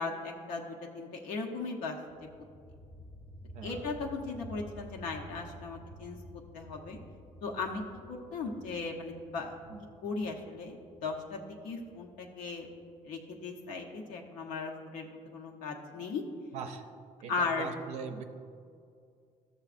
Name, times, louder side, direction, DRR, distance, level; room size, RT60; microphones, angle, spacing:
voice 1, 0.0-2.0 3.6-6.2 6.5-7.0 7.4-7.8 8.1-9.5 10.0-12.7 13.0-16.2 17.3-17.7, left 4 dB, 90° left, 0 dB, 0.8 m, -37 dB
sound 1, 2.1-13.6, equal, 15° left, 0.4 m, -51 dB
voice 2, 3.5-3.9 9.7-9.8 16.5-16.9 17.2-18.2, right 6 dB, 60° right, 6 dB, 0.5 m, -41 dB
13.5 x 6.9 x 2.5 m, 2.3 s
cardioid pair, 170°, 13 cm